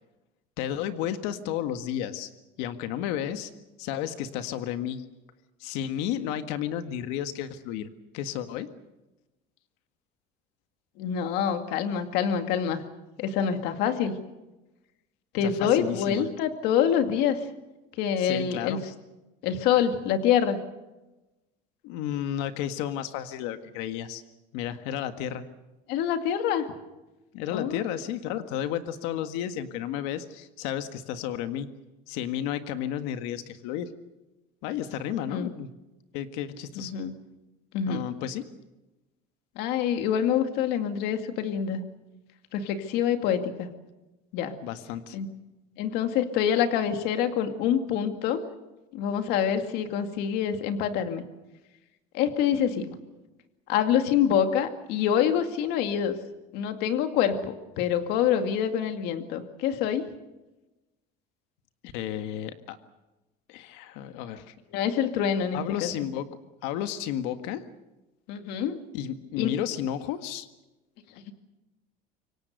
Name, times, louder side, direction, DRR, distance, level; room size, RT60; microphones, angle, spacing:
voice 1, 0.6-2.3 2.6-3.5 3.8-5.0 5.6-8.7 15.4-16.3 18.2-18.8 21.8-24.2 24.5-25.4 27.3-31.7 32.1-33.9 34.6-35.7 36.1-36.9 37.9-38.5 44.6-45.2 61.8-62.8 63.5-64.5 65.5-66.3 66.6-67.6 68.9-70.5, left 10 dB, 85° left, 9 dB, 1.8 m, -32 dB
voice 2, 11.0-12.8 13.2-14.2 15.3-17.4 18.0-18.8 19.4-20.6 25.9-26.7 27.5-27.8 35.3-35.5 36.8-37.1 37.7-38.1 39.6-41.8 42.5-43.7 44.3-44.5 45.1-45.3 45.8-48.4 48.9-51.2 52.1-53.0 53.7-56.2 56.5-60.1 64.7-65.9 68.3-68.8 69.4-69.5, left 8 dB, 65° left, 7 dB, 2.2 m, -26 dB
26.5 x 23.5 x 6.7 m, 1.0 s
cardioid pair, 170°, 18 cm